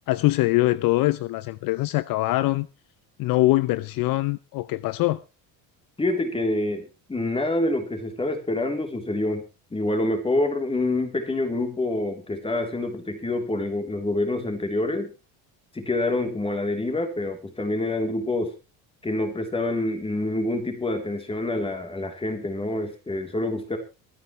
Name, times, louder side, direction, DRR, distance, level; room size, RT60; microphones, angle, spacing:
voice 1, 0.1-2.7 3.2-5.2, left 18 dB, 60° left, 0.6 m, -23 dB
voice 2, 6.0-9.4 9.7-15.1 15.7-18.5 19.0-23.8, left 2 dB, 15° left, 3.4 m, -26 dB
23.0 x 9.9 x 3.2 m
cardioid pair, 110°, 38 cm